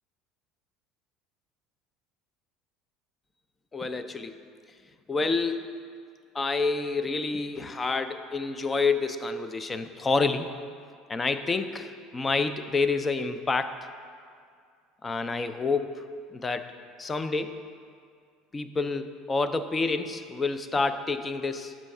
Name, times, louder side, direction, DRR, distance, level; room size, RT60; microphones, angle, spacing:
voice 1, 3.7-4.4 5.1-5.7 6.3-10.5 11.1-13.8 15.0-16.1 16.3-16.7 17.0-17.6 18.5-21.8, left 4 dB, 15° left, 10 dB, 0.3 m, -28 dB
6.1 x 4.5 x 6.5 m, 2.2 s
cardioid pair, 145°, 0 cm